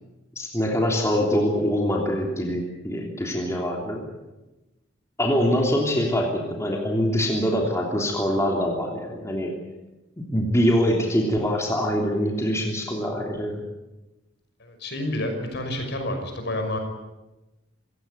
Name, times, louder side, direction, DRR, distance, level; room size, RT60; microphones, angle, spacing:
voice 1, 0.4-4.0 5.2-9.5 10.2-13.6, equal, 15° left, 0 dB, 3.2 m, -24 dB
voice 2, 14.6-16.8, left 1 dB, 60° left, 5 dB, 6.0 m, -29 dB
27.0 x 16.0 x 9.5 m, 1.0 s
head